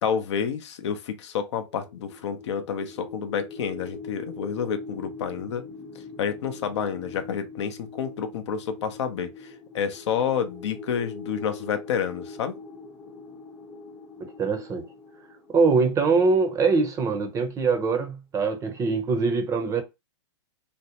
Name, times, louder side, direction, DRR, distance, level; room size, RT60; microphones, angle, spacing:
voice 1, 0.0-5.6 6.2-12.5, left 7 dB, 70° left, 0.6 m, -29 dB
sound 1, 1.6-16.6, left 3 dB, 20° left, 0.6 m, -42 dB
voice 2, 14.2-14.9 15.5-19.8, right 4 dB, 20° right, 0.5 m, -23 dB
2.5 x 2.0 x 2.8 m
hypercardioid pair, 125°, 15 cm